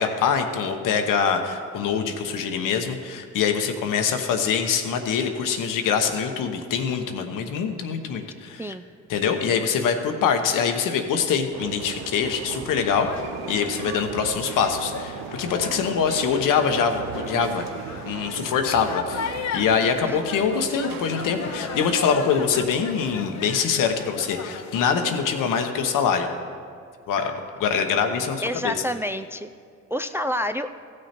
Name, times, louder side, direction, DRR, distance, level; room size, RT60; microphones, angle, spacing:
voice 1, 0.0-8.7 9.1-13.1 13.5-17.6 18.1-26.3 27.1-27.3 27.6-28.7, left 6 dB, 75° left, 6 dB, 1.0 m, -24 dB
sound 1, 11.5-23.3, right 10 dB, 90° right, 0.5 m, -38 dB
sound 2, 13.0-25.6, left 7 dB, 55° left, 0.7 m, -37 dB
voice 2, 28.4-29.5 29.9-30.7, equal, 10° right, 9 dB, 0.3 m, -28 dB
15.0 x 6.4 x 4.3 m, 2.4 s
supercardioid pair, 70°, 32 cm